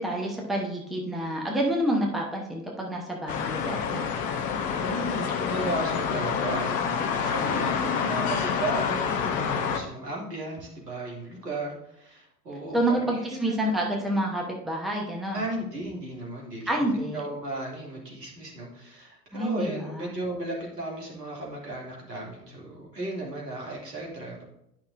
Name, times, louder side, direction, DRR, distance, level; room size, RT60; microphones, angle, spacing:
voice 1, 0.0-4.1 12.7-15.4 16.7-17.2 19.3-20.1, right 1 dB, ahead, -1 dB, 1.0 m, -28 dB
sound 1, 3.3-9.8, left 6 dB, 20° left, 0.5 m, -28 dB
voice 2, 4.8-13.7 15.3-24.4, right 1 dB, 75° right, -3 dB, 2.6 m, -35 dB
11.0 x 5.8 x 2.5 m, 0.80 s
figure-of-eight pair, 90°, 49 cm